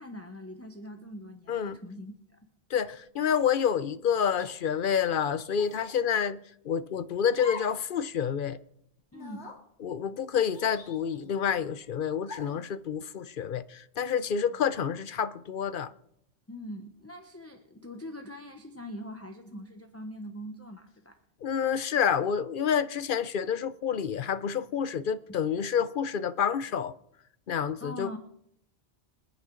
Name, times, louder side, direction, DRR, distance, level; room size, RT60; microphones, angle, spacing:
voice 1, 0.0-2.4 9.1-9.5 16.5-21.2 27.8-28.2, equal, 15° left, 1.0 m, -42 dB
voice 2, 2.7-6.4 6.6-8.6 9.8-15.9 21.4-26.9 27.5-28.2, left 7 dB, 55° left, 0.8 m, -28 dB
sound 1, 3.2-3.6 4.3-4.5 5.5-6.0 7.3-7.8 8.2-8.3 9.1-9.6 10.5-11.4 12.2-12.6, left 4 dB, 75° left, 2.4 m, -44 dB
26.0 x 9.2 x 3.9 m
omnidirectional pair, 1.1 m